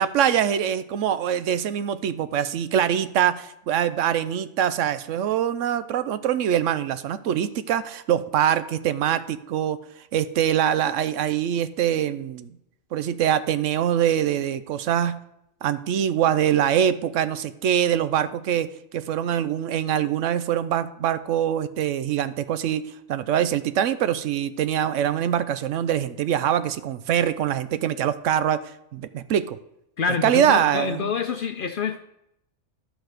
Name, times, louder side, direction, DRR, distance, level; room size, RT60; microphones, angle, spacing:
voice 1, 0.0-9.8 10.1-12.6 12.9-15.2 15.6-22.8 23.1-28.6 28.9-29.6 30.2-31.1, right 10 dB, 80° right, 13 dB, 0.9 m, -23 dB
voice 2, 30.0-32.1, left 6 dB, 60° left, 8 dB, 0.6 m, -27 dB
11.5 x 4.0 x 6.5 m, 0.81 s
omnidirectional pair, 1.3 m